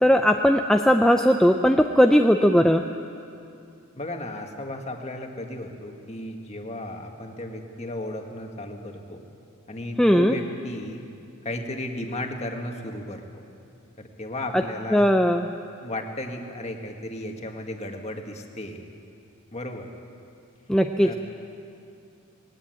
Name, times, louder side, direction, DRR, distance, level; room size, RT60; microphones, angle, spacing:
voice 1, 0.0-2.8 10.0-10.4 14.9-15.5 20.7-21.1, equal, 5° left, 4 dB, 0.5 m, -18 dB
voice 2, 4.0-9.2 9.7-11.0 11.4-13.5 14.0-15.0 15.8-18.8 19.5-19.9 21.0-21.1, left 1 dB, 30° left, 3 dB, 1.8 m, -34 dB
20.5 x 17.5 x 9.1 m, 2.6 s
head